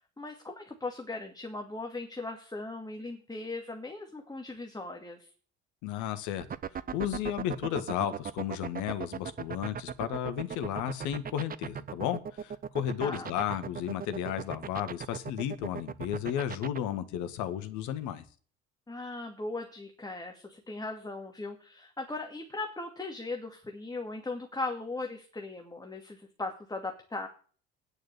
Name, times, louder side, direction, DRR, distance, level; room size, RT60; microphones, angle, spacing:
voice 1, 0.2-5.3 13.0-13.3 18.9-27.3, left 2 dB, 10° left, 2 dB, 2.4 m, -38 dB
voice 2, 5.8-6.5 6.9-18.2, left 10 dB, 60° left, 10 dB, 1.6 m, -33 dB
sound 1, 6.4-16.8, right 7 dB, 25° right, 0.8 m, -37 dB
9.9 x 6.5 x 8.5 m, 0.43 s
hypercardioid pair, 60°, 33 cm